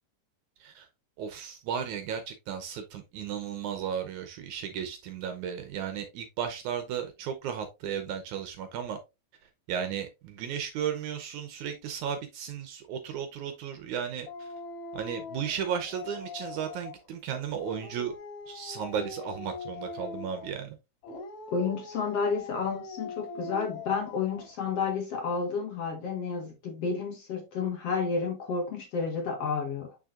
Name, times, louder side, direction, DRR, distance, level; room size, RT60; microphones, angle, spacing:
voice 1, 1.2-9.0 9.7-14.5 14.9-18.1 18.5-20.8, right 8 dB, 70° right, 2.0 m, -35 dB
Dog, 14.3-17.1 17.5-20.6 21.0-24.6, left 4 dB, 70° left, 3.9 m, -42 dB
voice 2, 21.5-30.0, left 5 dB, 55° left, 2.1 m, -31 dB
6.5 x 6.4 x 2.4 m
omnidirectional pair, 4.0 m